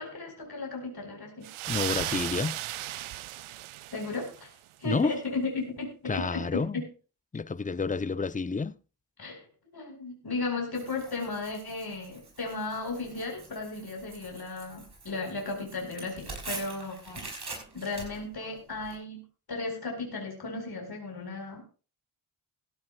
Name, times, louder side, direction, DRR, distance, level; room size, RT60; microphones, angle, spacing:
voice 1, 0.0-1.5 3.9-4.5 4.8-6.8 9.2-9.4 9.7-17.2 17.7-19.2 19.5-21.6, left 3 dB, 50° left, 4.6 m, -35 dB
sound 1, 1.4-4.5, right 15 dB, 85° right, 0.6 m, -35 dB
voice 2, 1.7-2.6 4.8-5.2 6.1-6.8 7.3-8.7, left 4 dB, 15° left, 0.6 m, -29 dB
Tearing, 10.7-19.0, right 3 dB, 55° right, 6.8 m, -45 dB
17.0 x 14.5 x 2.4 m
cardioid pair, 45°, 48 cm